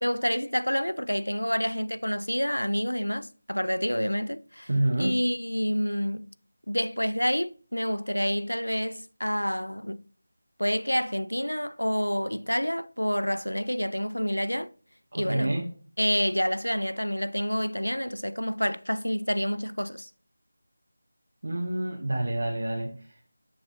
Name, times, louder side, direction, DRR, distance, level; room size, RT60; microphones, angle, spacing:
voice 1, 0.0-4.7 5.0-6.3 6.7-10.0 10.6-14.7 15.1-15.5 16.0-20.1, equal, 90° left, 0.5 m, -28 dB
voice 2, 4.7-5.2 15.1-15.7 21.4-22.9, right 1 dB, 55° right, 1.4 m, -27 dB
8.5 x 7.2 x 2.6 m
figure-of-eight pair, 165°, 0 cm